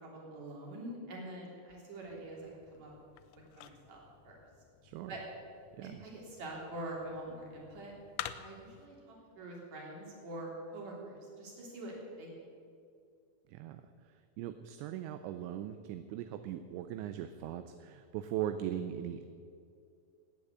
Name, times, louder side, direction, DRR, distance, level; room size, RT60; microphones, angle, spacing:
voice 1, 0.0-2.9 3.6-4.0 4.2-4.3 5.1-5.2 5.8-7.9 8.3-12.5, right 1 dB, 40° right, -3 dB, 4.3 m, -45 dB
sound 1, 2.0-8.9, left 12 dB, 85° left, 2.9 m, -49 dB
voice 2, 4.8-5.1 5.7-6.0 13.5-19.3, right 11 dB, 80° right, 9 dB, 2.8 m, -40 dB
18.5 x 8.8 x 8.0 m, 2.4 s
omnidirectional pair, 5.4 m